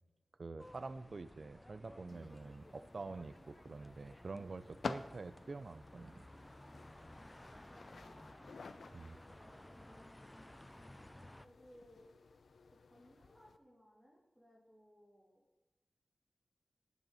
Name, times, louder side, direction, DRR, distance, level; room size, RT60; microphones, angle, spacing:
voice 1, 0.4-6.2 8.9-9.2, right 3 dB, 60° right, 14 dB, 0.5 m, -47 dB
sound 1, 0.6-11.5, left 1 dB, 10° left, 0.5 m, -57 dB
sound 2, 2.1-13.6, left 4 dB, 85° left, 0.6 m, -52 dB
voice 2, 7.7-8.4 9.1-10.3 11.4-12.0 12.7-15.4, equal, 5° right, -5 dB, 3.4 m, -64 dB
18.5 x 7.2 x 4.2 m, 1.1 s
wide cardioid pair, 70°, 0 cm